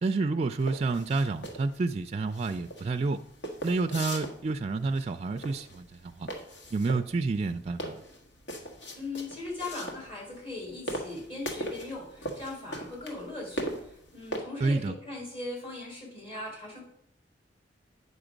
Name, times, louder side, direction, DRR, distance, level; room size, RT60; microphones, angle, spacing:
voice 1, 0.0-3.2 3.6-6.3 6.7-8.0 14.6-14.9, right 3 dB, 35° right, 8 dB, 0.4 m, -29 dB
sound 1, 0.6-14.4, right 1 dB, 90° left, 1.6 m, -39 dB
voice 2, 8.9-16.8, left 2 dB, 35° left, -3 dB, 4.1 m, -39 dB
8.8 x 6.5 x 5.1 m, 0.72 s
head